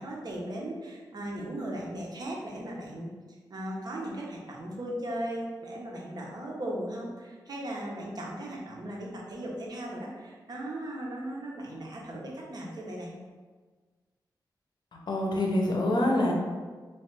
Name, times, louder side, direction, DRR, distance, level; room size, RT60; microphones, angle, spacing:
voice 1, 0.0-3.1 3.5-13.1, right 1 dB, 55° right, -2 dB, 0.8 m, -37 dB
voice 2, 14.9-16.3, left 1 dB, 65° left, -1 dB, 0.7 m, -26 dB
3.1 x 3.1 x 3.2 m, 1.4 s
wide cardioid pair, 90°, 8 cm